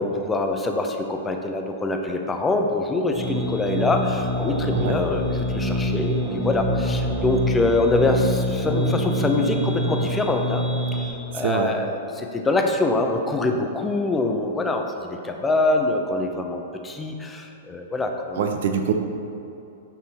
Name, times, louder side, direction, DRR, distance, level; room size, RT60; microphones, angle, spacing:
voice 1, 0.0-10.6 10.9-11.0 11.3-18.4, left 2 dB, 15° left, 3 dB, 0.8 m, -24 dB
sound 1, 3.1-11.1, equal, 20° right, 1.4 m, -25 dB
voice 2, 11.3-11.8 18.4-18.9, right 7 dB, 55° right, 5 dB, 0.8 m, -24 dB
8.9 x 5.4 x 4.4 m, 2.8 s
figure-of-eight pair, 105°, 0 cm